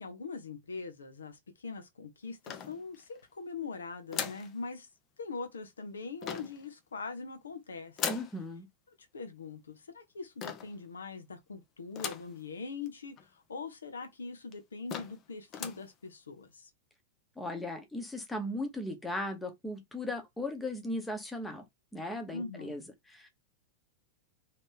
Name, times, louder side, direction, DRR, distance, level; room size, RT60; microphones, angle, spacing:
voice 1, 0.0-4.9 5.2-8.0 9.1-16.7 22.3-22.8, left 4 dB, 70° left, 0.8 m, -42 dB
sound 1, 2.5-3.2 4.1-4.5 6.2-6.7 8.0-8.4 10.4-10.8 12.0-12.4 12.9-13.0 13.2-13.3 14.0-14.1 14.5-14.6 14.9-15.2 15.5-15.9, left 8 dB, 35° left, 0.6 m, -38 dB
voice 2, 8.1-8.7 17.4-21.6 21.9-23.3, left 1 dB, 5° left, 1.0 m, -37 dB
3.1 x 2.9 x 3.5 m
figure-of-eight pair, 90°, 0 cm